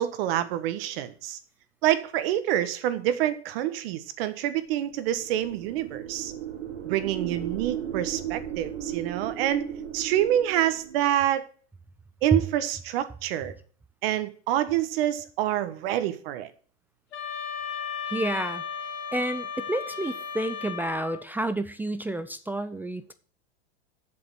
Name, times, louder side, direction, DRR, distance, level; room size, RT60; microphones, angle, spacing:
voice 1, 0.0-1.4 1.8-6.3 6.8-9.6 9.9-11.5 12.2-13.5 14.0-16.5, right 12 dB, 60° right, 1.4 m, -27 dB
sound 1, 5.0-11.1, right 10 dB, 90° right, 2.0 m, -36 dB
sound 2, 17.1-21.3, left 7 dB, 80° left, 2.6 m, -35 dB
voice 2, 18.1-18.6 19.1-23.1, right 1 dB, 5° right, 0.4 m, -29 dB
7.6 x 6.9 x 7.8 m
supercardioid pair, 125°, 33 cm